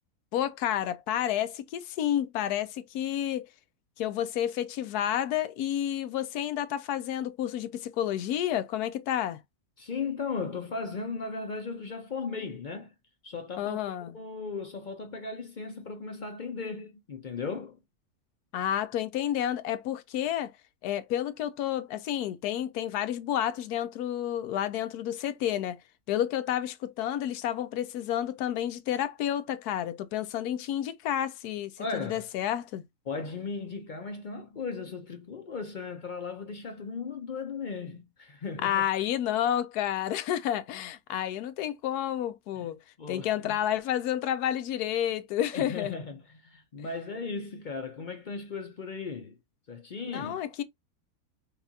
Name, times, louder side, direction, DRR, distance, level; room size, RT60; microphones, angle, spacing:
voice 1, 0.3-3.5 4.0-9.4 13.6-14.2 18.5-20.5 20.8-25.8 26.1-32.8 38.6-42.8 43.1-46.0 50.1-50.6, left 11 dB, 90° left, 1.1 m, -30 dB
voice 2, 9.8-12.9 13.2-17.8 31.8-32.3 33.1-38.8 42.6-42.7 43.0-43.5 45.5-49.4 49.7-50.4, left 4 dB, 55° left, 0.5 m, -37 dB
5.4 x 2.4 x 2.7 m
omnidirectional pair, 1.6 m